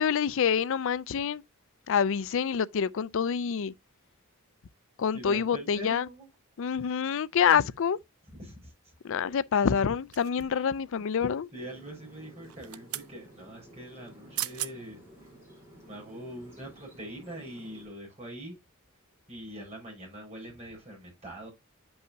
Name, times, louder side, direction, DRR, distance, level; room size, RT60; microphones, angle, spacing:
voice 1, 0.0-1.4 1.9-3.7 5.0-6.1 6.6-8.0 9.0-11.5, left 7 dB, 65° left, 0.4 m, -27 dB
voice 2, 5.1-6.3 7.5-7.7 8.4-8.7 9.3-9.4 10.4-10.6 11.5-15.0 15.8-18.6 19.3-21.5, equal, 30° right, 5.3 m, -43 dB
sound 1, 10.1-10.7 12.4-13.1 14.1-14.2 14.4-14.7 15.3-15.4, right 15 dB, 85° right, 0.5 m, -37 dB
sound 2, 11.5-17.9, equal, 10° right, 3.9 m, -53 dB
9.9 x 5.5 x 2.7 m
head